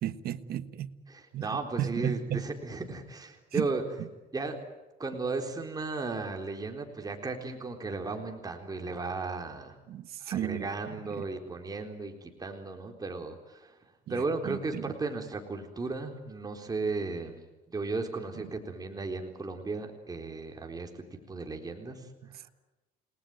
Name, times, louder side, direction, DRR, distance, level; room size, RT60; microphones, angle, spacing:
voice 1, 0.0-0.9 1.3-2.5 3.5-3.7 4.0-4.1 9.9-10.7 11.1-11.2 14.1-14.9, right 11 dB, 65° right, 11 dB, 1.4 m, -34 dB
voice 2, 1.1-3.8 4.3-4.6 5.0-9.8 10.2-13.8 14.1-22.4, right 3 dB, 20° right, 3 dB, 4.0 m, -35 dB
30.0 x 19.5 x 9.2 m, 1.1 s
cardioid pair, 110°, 17 cm